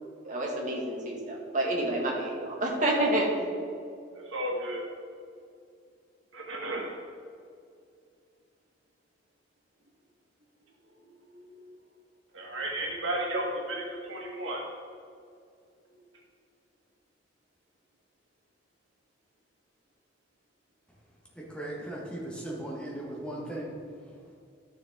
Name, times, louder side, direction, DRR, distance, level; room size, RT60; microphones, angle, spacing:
voice 1, 0.2-3.5, right 1 dB, 40° right, -2 dB, 2.0 m, -28 dB
voice 2, 4.1-4.8 6.3-7.0 11.0-11.7 12.3-14.6 15.9-16.0, right 1 dB, 85° right, -2 dB, 2.0 m, -34 dB
voice 3, 21.3-23.7, right 1 dB, 5° left, -4 dB, 1.6 m, -37 dB
12.5 x 6.8 x 3.8 m, 2.4 s
head